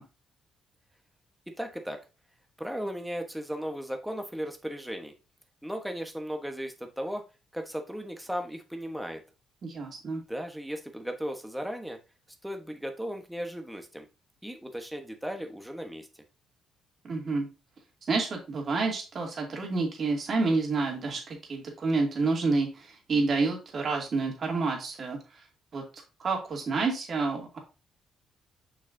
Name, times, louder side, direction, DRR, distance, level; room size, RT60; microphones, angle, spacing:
voice 1, 1.6-2.0 2.6-5.1 5.6-7.2 7.5-9.2 10.3-12.0 12.4-14.0 14.4-16.1, equal, 5° right, 4 dB, 1.1 m, -36 dB
voice 2, 9.6-10.2 17.0-17.5 18.1-25.4 25.7-25.8 26.2-27.6, right 3 dB, 50° right, 0 dB, 2.5 m, -29 dB
6.5 x 6.0 x 2.7 m, 0.29 s
cardioid pair, 90°, 0 cm